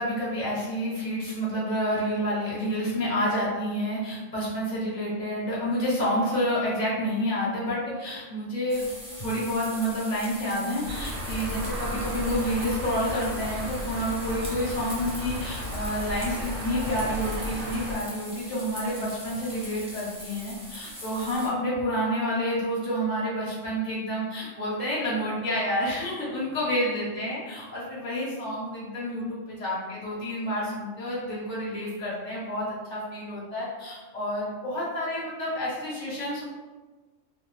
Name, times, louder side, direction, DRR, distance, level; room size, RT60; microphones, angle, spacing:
voice 1, 0.0-8.9 9.2-36.4, equal, 35° left, -7 dB, 1.1 m, -29 dB
sound 1, 8.7-21.5, equal, 5° right, 0.6 m, -41 dB
sound 2, 10.8-18.0, equal, 85° right, 1.0 m, -34 dB
2.7 x 2.0 x 3.1 m, 1.3 s
omnidirectional pair, 1.3 m